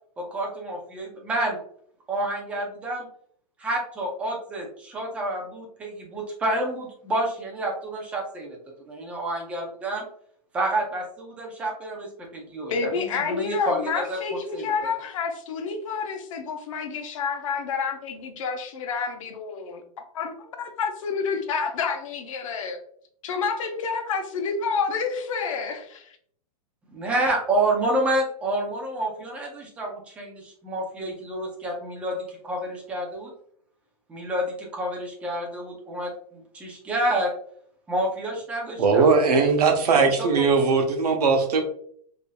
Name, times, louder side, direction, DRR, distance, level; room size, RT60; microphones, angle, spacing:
voice 1, 0.2-1.6 2.1-3.1 3.6-8.6 8.9-10.0 10.5-14.2 14.5-14.9 26.9-32.2 32.5-32.6 32.9-33.3 34.1-37.3 37.9-39.4 39.9-40.4, right 1 dB, 5° right, 0 dB, 0.4 m, -29 dB
voice 2, 12.7-19.8 20.1-22.8 23.2-26.1, left 5 dB, 55° left, 5 dB, 0.8 m, -29 dB
voice 3, 38.8-41.6, right 4 dB, 85° right, 5 dB, 0.9 m, -19 dB
4.8 x 2.6 x 2.2 m, 0.63 s
supercardioid pair, 170°, 20 cm